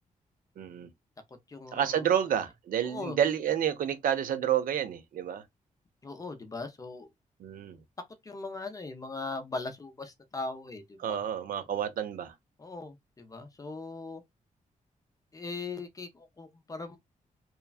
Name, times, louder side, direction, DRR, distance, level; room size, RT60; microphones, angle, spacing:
voice 1, 0.6-0.9 1.7-5.4 7.4-7.8 11.0-12.3, right 9 dB, 85° right, 0.6 m, -29 dB
voice 2, 1.5-2.1 2.8-3.2 6.0-7.1 8.2-11.2 12.6-14.2 15.3-17.0, left 3 dB, 25° left, 0.5 m, -39 dB
3.0 x 2.2 x 2.3 m
wide cardioid pair, 120°, 14 cm